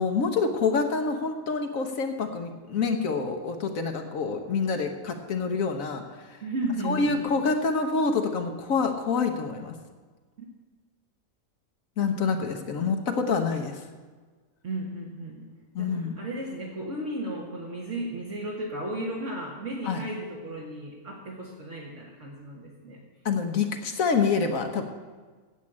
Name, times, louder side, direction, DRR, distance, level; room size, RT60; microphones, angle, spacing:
voice 1, 0.0-6.4 6.8-9.8 12.0-13.8 15.7-16.2 19.8-20.0 23.2-24.8, left 4 dB, 65° left, 5 dB, 1.3 m, -27 dB
voice 2, 6.4-7.3 10.4-10.5 14.6-15.5 15.8-23.0, right 1 dB, 55° right, -4 dB, 1.8 m, -34 dB
8.4 x 7.5 x 8.6 m, 1.4 s
omnidirectional pair, 1.6 m